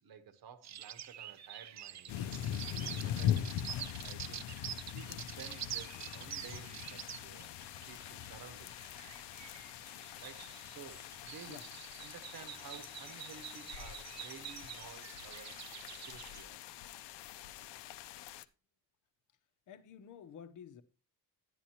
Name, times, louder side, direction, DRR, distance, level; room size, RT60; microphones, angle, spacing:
voice 1, 0.0-2.2 2.6-3.5 4.0-7.5 7.9-8.9 10.2-11.6 12.0-16.6, right 7 dB, 60° right, 1.2 m, -54 dB
sound 1, 0.6-16.4, right 10 dB, 40° right, 0.5 m, -47 dB
sound 2, 2.1-18.4, left 10 dB, 75° left, 0.7 m, -42 dB
voice 2, 19.7-20.8, left 8 dB, 45° left, 0.8 m, -51 dB
11.0 x 10.0 x 2.9 m
cardioid pair, 175°, 41 cm